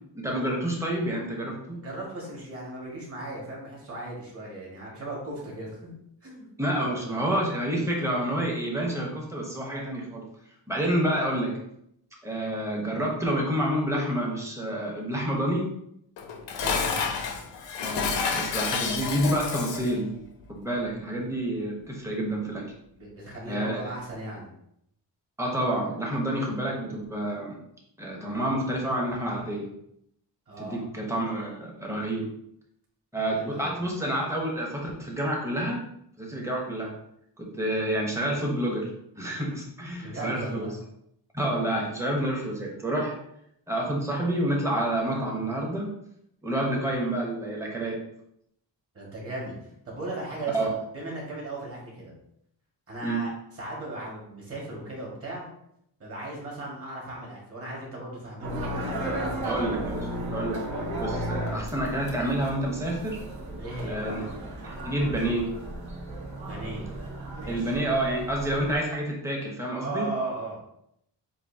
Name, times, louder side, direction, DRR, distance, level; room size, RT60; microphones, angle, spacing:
voice 1, 0.1-1.8 6.6-10.2 10.7-11.5 12.2-15.7 17.8-20.1 20.5-22.6 23.5-23.8 25.4-27.6 28.0-29.7 30.6-32.3 33.1-35.8 36.2-37.0 37.4-38.9 39.1-40.7 41.3-43.2 43.7-45.9 46.4-48.0 50.5-50.7 53.0-53.2 59.4-60.0 60.3-60.6 61.0-63.2 63.9-64.3 64.6-65.5 67.5-70.1, right 1 dB, 5° right, -1 dB, 0.9 m, -28 dB
voice 2, 1.7-5.9 6.2-6.5 6.8-7.2 16.6-16.8 22.9-24.5 30.5-30.8 33.3-33.8 40.0-40.8 48.9-49.6 49.9-52.1 52.9-55.5 56.0-59.7 63.6-64.3 66.4-66.9 67.3-67.7 69.8-70.8, right 2 dB, 30° right, -3 dB, 1.8 m, -37 dB
Dishes pots and pans, 16.2-20.0, left 5 dB, 85° left, 0.9 m, -29 dB
sound 1, 58.4-68.8, right 1 dB, 55° right, 1.3 m, -34 dB
7.2 x 2.7 x 2.8 m, 0.74 s
wide cardioid pair, 160°, 43 cm